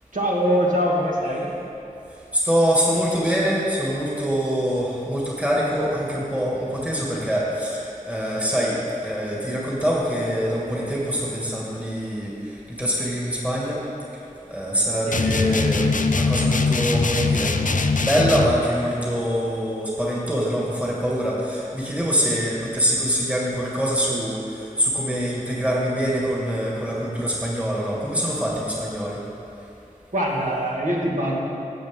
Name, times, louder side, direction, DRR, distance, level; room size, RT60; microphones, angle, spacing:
voice 1, 0.1-1.5 15.1-15.3 30.1-31.4, equal, 65° right, -4 dB, 1.9 m, -23 dB
voice 2, 2.3-8.7 9.0-12.3 12.7-13.8 14.5-17.5 18.0-29.2, equal, 10° right, -5 dB, 2.1 m, -24 dB
sound 1, 15.1-18.6, left 3 dB, 70° left, 0.5 m, -21 dB
15.0 x 7.8 x 3.8 m, 2.7 s
wide cardioid pair, 55°, 14 cm